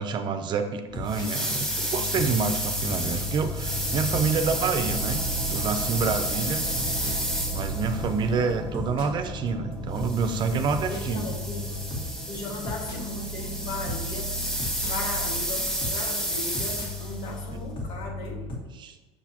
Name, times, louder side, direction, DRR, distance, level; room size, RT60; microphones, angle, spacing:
voice 1, 0.0-5.2 5.5-6.7 7.5-11.3 18.8-19.0, right 5 dB, 40° right, 8 dB, 0.6 m, -28 dB
sound 1, 0.9-18.6, left 1 dB, 40° left, 2.0 m, -36 dB
sound 2, 1.1-8.1 10.0-17.2, equal, 5° left, 1.4 m, -31 dB
sound 3, 3.1-18.4, right 3 dB, 15° right, 1.2 m, -39 dB
voice 2, 10.8-11.7 12.3-14.4 14.9-18.5, left 2 dB, 75° left, -1 dB, 1.8 m, -37 dB
6.6 x 6.1 x 2.9 m, 1.2 s
cardioid pair, 125°, 12 cm